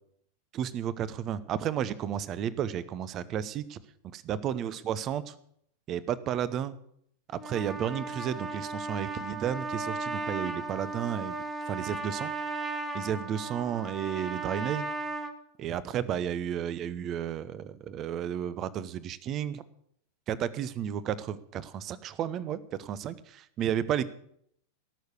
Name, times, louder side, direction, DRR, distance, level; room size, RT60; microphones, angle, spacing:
voice 1, 0.5-3.8 4.1-5.3 5.9-6.8 7.4-11.4 11.7-12.3 12.9-14.9 15.6-19.6 20.3-24.0, right 9 dB, 35° right, 17 dB, 0.9 m, -32 dB
Trumpet, 7.3-15.3, right 3 dB, 15° right, 1.7 m, -36 dB
17.5 x 6.6 x 8.4 m, 0.69 s
figure-of-eight pair, 90°, 0 cm